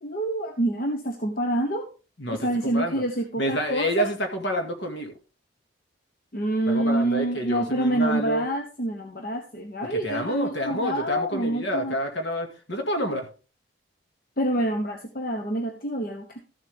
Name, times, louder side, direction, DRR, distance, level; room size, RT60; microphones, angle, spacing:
voice 1, 0.0-1.9 2.3-4.1 6.3-11.9 14.4-16.4, right 1 dB, 45° left, 5 dB, 0.9 m, -27 dB
voice 2, 2.2-3.0 3.4-5.1 6.7-8.5 9.9-13.3, right 1 dB, 65° left, 4 dB, 2.0 m, -28 dB
13.5 x 7.4 x 3.5 m, 0.34 s
head